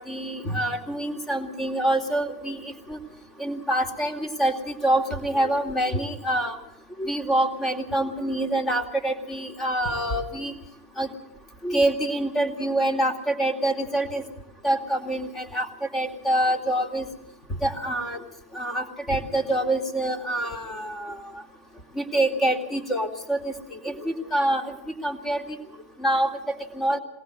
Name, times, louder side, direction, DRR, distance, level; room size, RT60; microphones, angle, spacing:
voice 1, 0.0-3.0 3.4-6.6 7.0-10.5 11.0-11.1 11.6-14.2 14.6-17.1 17.6-18.2 18.5-21.4 21.9-24.8 25.0-25.6 26.0-27.0, right 1 dB, 15° left, 8 dB, 2.4 m, -26 dB
22.5 x 18.5 x 6.4 m, 0.85 s
figure-of-eight pair, 90°, 0 cm